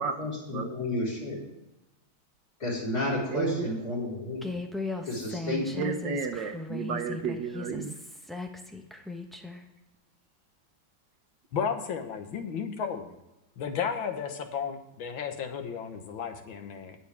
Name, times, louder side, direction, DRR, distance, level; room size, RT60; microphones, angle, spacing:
voice 1, 0.2-1.4 2.6-4.6 5.0-5.8, left 1 dB, 50° left, -3 dB, 5.0 m, -31 dB
voice 2, 3.3-3.9 5.7-7.9, right 5 dB, 65° right, 7 dB, 1.6 m, -32 dB
Human voice, 4.4-9.6, left 3 dB, ahead, 0.3 m, -37 dB
voice 3, 11.5-13.2 13.6-17.0, left 7 dB, 75° left, 6 dB, 2.0 m, -33 dB
20.5 x 7.2 x 3.5 m, 0.95 s
omnidirectional pair, 2.2 m